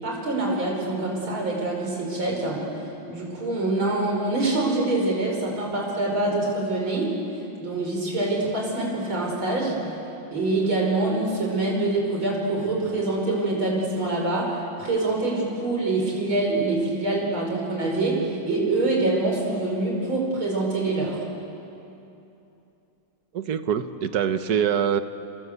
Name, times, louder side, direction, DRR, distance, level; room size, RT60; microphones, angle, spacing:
voice 1, 0.0-2.7 3.1-7.2 7.6-9.9 10.3-21.2, right 2 dB, 80° right, -1 dB, 6.2 m, -25 dB
voice 2, 23.3-25.0, right 8 dB, 55° right, 10 dB, 1.4 m, -24 dB
27.0 x 26.5 x 8.1 m, 2.8 s
omnidirectional pair, 2.2 m